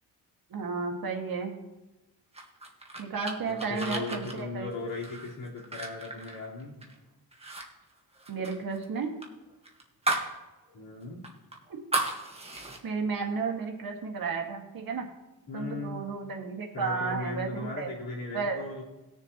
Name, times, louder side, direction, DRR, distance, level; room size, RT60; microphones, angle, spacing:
voice 1, 0.5-1.5 3.0-4.7 8.3-9.1 12.8-15.1 15.5-17.9 18.3-18.6, right 4 dB, 60° right, 1 dB, 1.9 m, -33 dB
sound 1, 2.3-7.0 7.3-7.7 7.9-10.4 10.7-10.8 11.2-12.8, right 2 dB, 15° right, 1.6 m, -35 dB
voice 2, 3.4-6.8 10.7-11.2 15.5-16.1 16.7-18.8, left 3 dB, 65° left, -6 dB, 4.1 m, -37 dB
19.5 x 6.7 x 3.0 m, 1.1 s
cardioid pair, 105°, 40 cm